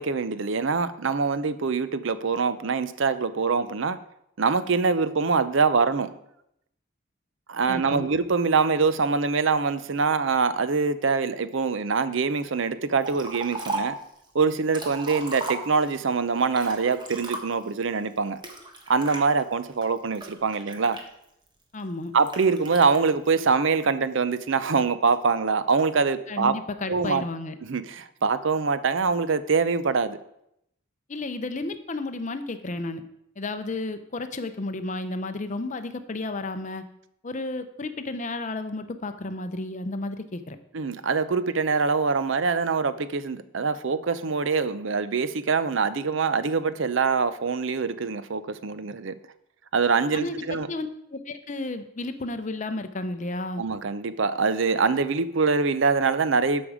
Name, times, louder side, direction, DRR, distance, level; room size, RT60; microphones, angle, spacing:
voice 1, 0.0-4.0 4.4-6.1 7.5-13.9 14.3-18.4 18.9-21.0 22.1-26.5 26.9-27.2 27.6-30.2 40.7-49.1 49.7-50.7 53.6-56.7, right 4 dB, 65° right, 13 dB, 0.6 m, -24 dB
voice 2, 7.7-8.1 21.7-22.1 26.3-27.5 31.1-33.0 33.4-36.9 37.2-40.6 50.1-53.6, left 2 dB, 35° left, 8 dB, 0.7 m, -32 dB
Liquid, 13.0-14.0 14.5-16.0 16.5-17.7 18.4-19.2 19.8-21.5 22.3-23.0, right 2 dB, 20° right, 1.3 m, -35 dB
12.5 x 5.3 x 4.9 m, 0.77 s
head